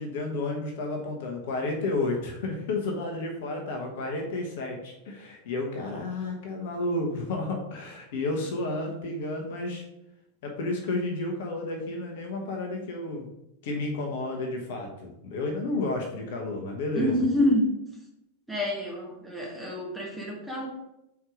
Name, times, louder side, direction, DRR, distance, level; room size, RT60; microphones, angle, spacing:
voice 1, 0.0-9.8 10.4-13.3 13.6-17.1, left 2 dB, 55° left, 2 dB, 1.1 m, -31 dB
voice 2, 16.9-17.7 18.5-20.7, left 1 dB, 5° right, -2 dB, 1.6 m, -27 dB
4.7 x 4.5 x 5.0 m, 0.84 s
figure-of-eight pair, 90°, 0 cm